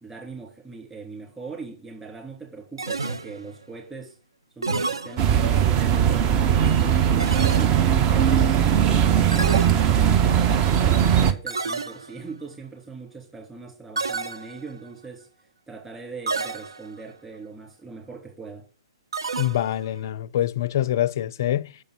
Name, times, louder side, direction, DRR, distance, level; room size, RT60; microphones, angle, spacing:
voice 1, 0.0-4.2 4.5-8.3 8.7-15.3 15.7-18.7, right 4 dB, 10° right, 3.2 m, -40 dB
sound 1, 2.8-3.6 4.6-5.6 7.2-8.0 9.3-10.3 11.5-12.3 14.0-14.9 16.3-17.1 19.1-20.0, right 4 dB, 75° right, 0.6 m, -30 dB
sound 2, 5.2-11.3, right 9 dB, 25° right, 0.7 m, -19 dB
voice 2, 19.4-21.8, left 12 dB, 45° left, 0.4 m, -25 dB
6.4 x 5.3 x 7.0 m
figure-of-eight pair, 120°, 3 cm